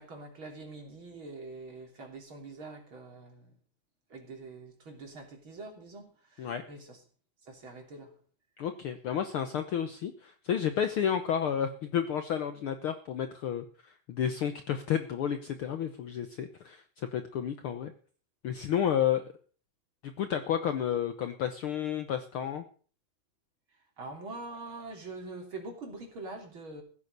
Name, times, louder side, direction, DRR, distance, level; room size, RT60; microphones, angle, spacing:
voice 1, 0.0-3.5 4.1-7.0 7.4-8.2 24.0-26.8, right 3 dB, 40° right, 3 dB, 3.7 m, -44 dB
voice 2, 8.6-17.9 18.4-19.2 20.0-22.6, left 9 dB, 90° left, 8 dB, 1.1 m, -31 dB
15.5 x 9.4 x 6.6 m, 0.42 s
omnidirectional pair, 3.8 m